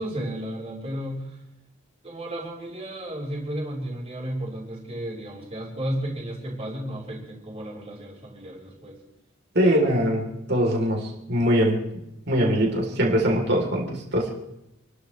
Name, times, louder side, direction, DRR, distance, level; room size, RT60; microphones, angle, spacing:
voice 1, 0.0-1.4 2.0-9.0, right 1 dB, 30° right, -3 dB, 5.7 m, -33 dB
voice 2, 9.5-11.8 12.3-14.3, equal, 55° right, 0 dB, 3.8 m, -22 dB
29.0 x 13.0 x 3.4 m, 0.86 s
head